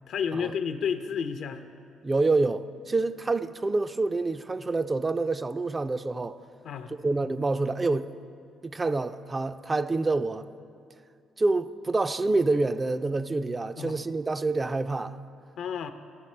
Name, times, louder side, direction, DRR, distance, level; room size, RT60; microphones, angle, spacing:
voice 1, 0.1-1.6 6.6-6.9 13.8-14.0 15.6-15.9, left 7 dB, 70° left, 0.5 m, -31 dB
voice 2, 2.0-6.4 6.9-8.1 8.6-10.5 11.4-15.2, right 3 dB, 25° right, 0.4 m, -27 dB
14.0 x 5.9 x 4.3 m
cardioid pair, 85°, 0 cm